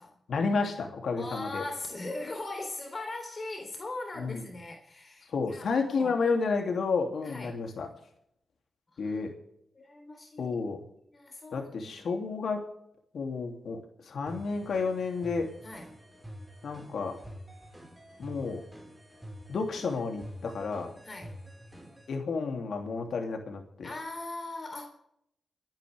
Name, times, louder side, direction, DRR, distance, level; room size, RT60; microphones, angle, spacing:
voice 1, 0.3-1.6 4.2-4.4 5.3-7.9 9.0-9.3 10.4-10.8 11.5-12.6 13.1-15.5 16.6-17.2 18.2-18.6 19.5-20.9 22.1-23.9, left 4 dB, 75° left, 3 dB, 2.9 m, -31 dB
voice 2, 1.2-6.2 7.2-7.6 8.9-9.2 9.7-10.5 11.1-12.2 15.6-15.9 21.0-21.4 23.8-24.9, left 2 dB, 45° left, 4 dB, 3.4 m, -40 dB
sound 1, 14.3-22.1, equal, 10° right, 4.9 m, -47 dB
27.5 x 10.5 x 3.5 m, 0.75 s
cardioid pair, 60°, 0 cm